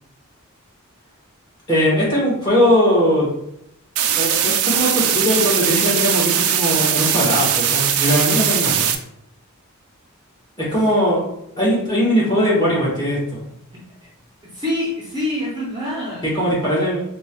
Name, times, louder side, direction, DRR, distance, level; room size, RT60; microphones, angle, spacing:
voice 1, 1.7-3.3 4.2-8.9 10.6-11.2 11.6-13.4 16.3-17.0, equal, 20° left, -7 dB, 1.5 m, -19 dB
sound 1, 4.0-9.0, right 9 dB, 85° right, 0.4 m, -19 dB
voice 2, 14.4-16.3, left 1 dB, 20° right, -5 dB, 0.6 m, -26 dB
4.4 x 2.3 x 3.0 m, 0.78 s
head